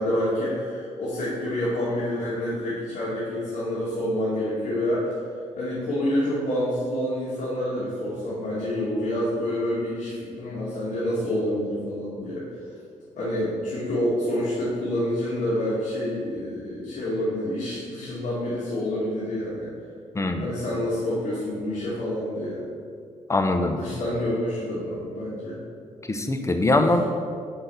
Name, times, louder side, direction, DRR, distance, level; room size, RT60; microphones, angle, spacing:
voice 1, 0.0-5.1 5.6-12.4 13.2-19.7 20.4-22.6 23.7-25.6, left 1 dB, 75° left, -9 dB, 2.2 m, -27 dB
voice 2, 20.1-20.5 23.3-23.8 26.1-27.1, left 2 dB, 20° left, 6 dB, 0.8 m, -22 dB
6.0 x 5.5 x 6.8 m, 2.2 s
cardioid pair, 80°, 13 cm